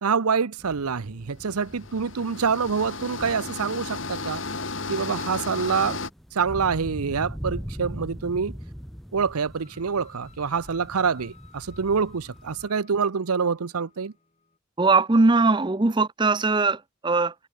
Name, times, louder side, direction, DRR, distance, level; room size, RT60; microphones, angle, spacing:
voice 1, 0.0-4.4 4.9-6.0 6.3-8.6 9.1-14.1, right 5 dB, 90° right, 0.7 m, -26 dB
sound 1, 0.6-12.7, equal, ahead, 5.3 m, -41 dB
sound 2, 1.5-6.1, left 3 dB, 60° left, 2.4 m, -34 dB
sound 3, 9.5-14.6, left 6 dB, 30° left, 5.3 m, -57 dB
voice 2, 14.8-17.3, right 3 dB, 20° right, 0.5 m, -20 dB
head